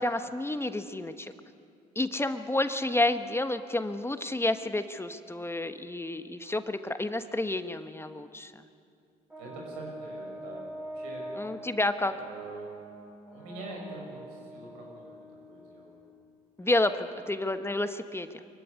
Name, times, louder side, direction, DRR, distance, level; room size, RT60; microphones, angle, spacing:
voice 1, 0.0-1.3 1.9-8.5 11.4-12.1 16.6-18.3, left 2 dB, 15° left, 10 dB, 1.2 m, -30 dB
Brass instrument, 9.3-16.0, right 1 dB, 10° right, 7.0 m, -44 dB
voice 2, 9.4-10.7 10.9-11.3 11.9-12.9 13.3-15.9 16.6-16.7 17.1-17.2, right 2 dB, 90° right, -1 dB, 6.2 m, -44 dB
23.5 x 15.0 x 9.7 m, 2.4 s
supercardioid pair, 65°, 18 cm